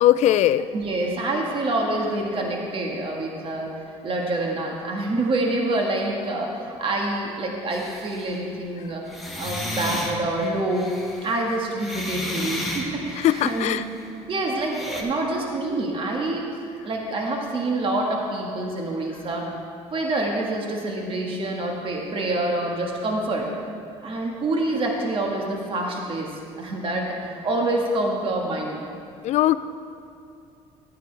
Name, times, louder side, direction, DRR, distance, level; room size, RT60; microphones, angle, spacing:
voice 1, 0.0-0.7 13.2-13.8 29.2-29.6, left 13 dB, 60° left, 14 dB, 0.4 m, -19 dB
voice 2, 0.7-3.7 4.0-9.0 9.4-10.9 11.2-13.8 14.3-16.5 16.8-19.5 19.9-23.5 24.0-26.3 26.6-28.8, right 2 dB, 40° right, 0 dB, 1.6 m, -26 dB
sound 1, 7.7-8.4 9.1-14.1 14.7-15.0, left 1 dB, ahead, 1.8 m, -33 dB
14.0 x 9.2 x 3.4 m, 2.6 s
supercardioid pair, 95°, 13 cm